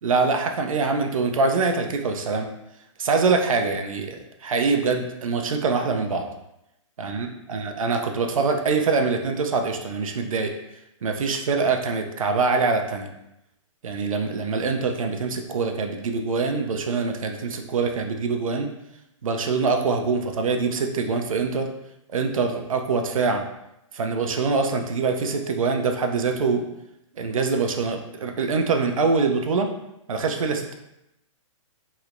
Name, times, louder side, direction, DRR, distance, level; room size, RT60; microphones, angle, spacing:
voice 1, 0.0-2.5 3.0-6.3 7.0-10.5 11.0-13.1 13.8-18.7 19.2-21.7 22.1-23.4 23.9-26.7 27.2-29.7 30.1-30.7, right 4 dB, 90° right, 4 dB, 0.5 m, -24 dB
3.2 x 2.9 x 2.5 m, 0.85 s
hypercardioid pair, 145°, 17 cm